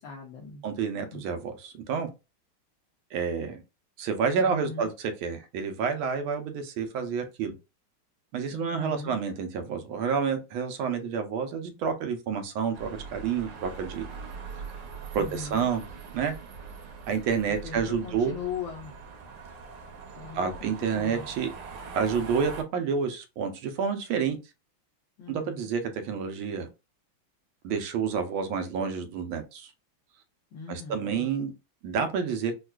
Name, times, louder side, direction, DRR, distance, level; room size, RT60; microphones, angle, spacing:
voice 1, 0.0-0.6 1.1-1.2 4.4-4.9 8.5-9.2 15.1-15.7 17.6-18.9 20.2-21.3 25.2-25.7 30.5-31.3, left 6 dB, 75° left, 1.4 m, -39 dB
voice 2, 0.6-2.1 3.1-3.6 4.0-7.5 8.3-14.1 15.1-15.8 16.1-16.3 17.1-18.3 20.3-21.5 21.9-24.4 25.3-26.7 27.6-29.7 30.7-31.5 31.8-32.5, right 6 dB, 90° right, 1.5 m, -29 dB
sound 1, 12.7-22.6, right 5 dB, 70° right, 1.3 m, -42 dB
4.6 x 2.4 x 2.2 m
omnidirectional pair, 2.2 m